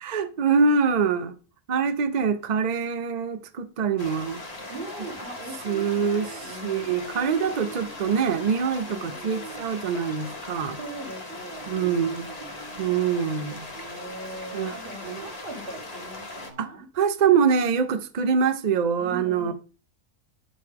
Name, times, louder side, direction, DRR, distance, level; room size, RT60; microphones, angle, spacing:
voice 1, 0.0-1.3 1.7-4.4 5.6-6.3 6.6-10.8 11.7-12.3 12.8-13.7 14.5-14.7 15.0-15.2 16.6-19.5, right 6 dB, 90° right, 0.3 m, -24 dB
sound 1, 4.0-16.5, left 2 dB, 30° left, 1.1 m, -39 dB
voice 2, 4.7-8.0 8.9-9.6 10.8-13.1 13.7-16.9 19.0-19.5, right 2 dB, 35° right, 1.8 m, -41 dB
9.9 x 4.7 x 3.5 m
omnidirectional pair, 1.6 m